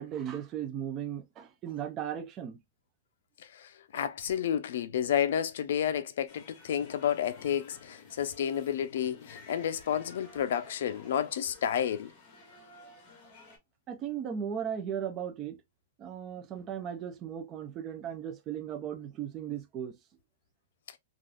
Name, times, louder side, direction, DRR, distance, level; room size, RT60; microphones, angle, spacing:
voice 1, 0.0-2.6 13.9-15.6 16.0-19.9, right 9 dB, 20° right, 0.4 m, -36 dB
voice 2, 3.5-12.1, left 9 dB, 60° left, 0.4 m, -31 dB
sound 1, 6.3-13.6, left 3 dB, 25° left, 0.9 m, -54 dB
3.4 x 2.4 x 2.4 m
supercardioid pair, 175°, 0 cm